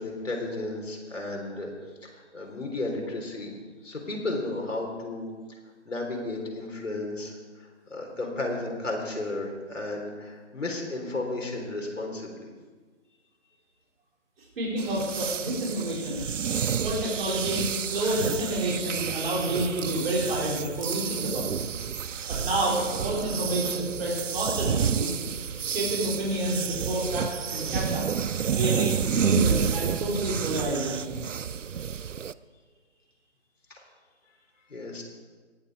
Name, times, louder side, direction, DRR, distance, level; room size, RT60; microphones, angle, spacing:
voice 1, 0.0-1.7 2.0-5.6 5.9-12.5 33.7-33.8 34.7-35.0, left 2 dB, 80° left, 1 dB, 3.9 m, -34 dB
voice 2, 14.6-16.3 16.8-21.6 22.3-25.1 25.7-28.0 28.5-31.2, right 1 dB, 50° right, -5 dB, 4.5 m, -29 dB
sound 1, 14.8-32.3, right 7 dB, 80° right, 0.6 m, -30 dB
18.0 x 8.1 x 4.9 m, 1.4 s
figure-of-eight pair, 150°, 37 cm